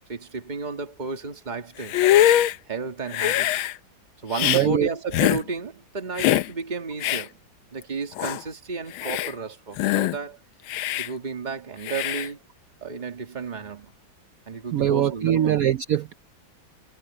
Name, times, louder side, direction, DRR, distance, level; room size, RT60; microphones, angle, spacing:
voice 1, 0.1-2.0 2.7-3.6 4.2-7.4 7.7-10.4 11.0-12.4 12.8-13.9 14.5-15.6, right 4 dB, 20° right, 2.0 m, -32 dB
Hiss, 1.8-2.6 3.1-3.7 4.3-4.6 5.1-5.4 6.2-6.5 7.0-7.3 7.8-7.9 8.2-8.4 8.9-9.3 9.8-10.2 10.7-11.1 11.9-12.3, left 13 dB, 90° left, 1.5 m, -22 dB
voice 2, 4.4-4.9 14.7-16.1, right 11 dB, 85° right, 0.7 m, -22 dB
omnidirectional pair, 2.2 m